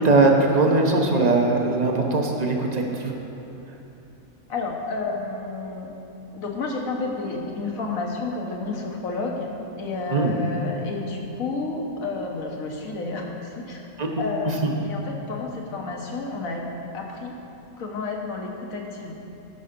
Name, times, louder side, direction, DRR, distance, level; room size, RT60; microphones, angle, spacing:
voice 1, 0.0-3.1 10.1-10.3 14.0-14.1 14.5-14.7, right 2 dB, 35° right, 1 dB, 0.8 m, -20 dB
voice 2, 4.5-5.9 6.3-9.5 9.8-13.8 14.2-16.6 16.9-17.3 17.8-19.2, left 3 dB, 65° left, 0 dB, 1.6 m, -30 dB
13.5 x 5.6 x 5.2 m, 2.9 s
omnidirectional pair, 1.6 m